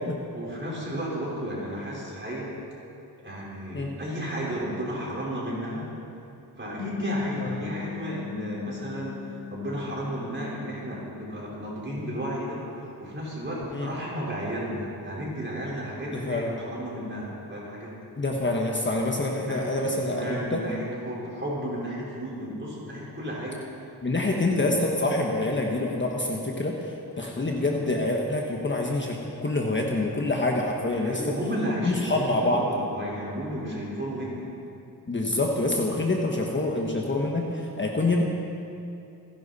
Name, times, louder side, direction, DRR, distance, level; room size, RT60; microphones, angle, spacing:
voice 1, 0.3-2.5 3.2-5.9 6.6-17.9 19.4-23.6 24.2-24.6 27.1-27.3 27.6-27.8 31.0-34.5, equal, 30° right, -5 dB, 4.5 m, -33 dB
sound 1, 6.8-11.4, left 8 dB, 85° left, 1.3 m, -39 dB
voice 2, 16.1-16.5 18.2-20.6 24.0-26.8 27.2-31.2 31.8-32.7 35.1-38.2, left 2 dB, 30° left, 0 dB, 1.3 m, -26 dB
27.5 x 10.5 x 4.2 m, 2.7 s
wide cardioid pair, 130°, 38 cm